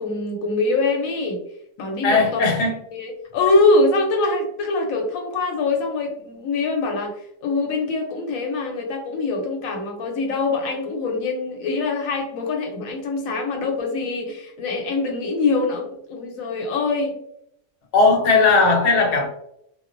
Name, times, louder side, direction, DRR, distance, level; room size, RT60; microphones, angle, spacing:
voice 1, 0.0-1.4 1.8-2.2 2.9-17.2, left 3 dB, 85° left, 2 dB, 1.0 m, -23 dB
voice 2, 2.0-2.7 17.9-19.3, left 3 dB, 60° left, 0 dB, 0.9 m, -17 dB
2.4 x 2.2 x 2.4 m, 0.74 s
omnidirectional pair, 1.4 m